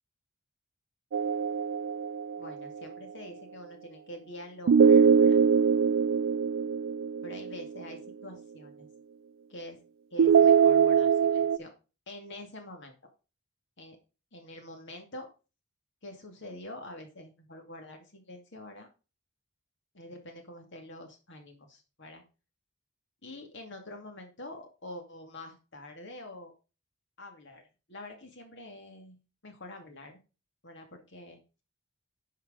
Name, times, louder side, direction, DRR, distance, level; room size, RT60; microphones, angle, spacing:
sound 1, 1.1-2.7 4.7-7.8 10.2-11.6, right 6 dB, 65° right, 0.4 m, -22 dB
voice 1, 2.4-5.4 7.2-8.9 9.5-9.8 10.1-11.7 12.1-12.9 13.8-14.0 14.3-15.3 16.0-18.9 19.9-22.2 23.2-26.5 27.2-30.2 30.6-31.6, left 1 dB, 60° left, 4 dB, 2.4 m, -46 dB
10.5 x 4.8 x 5.1 m, 0.32 s
head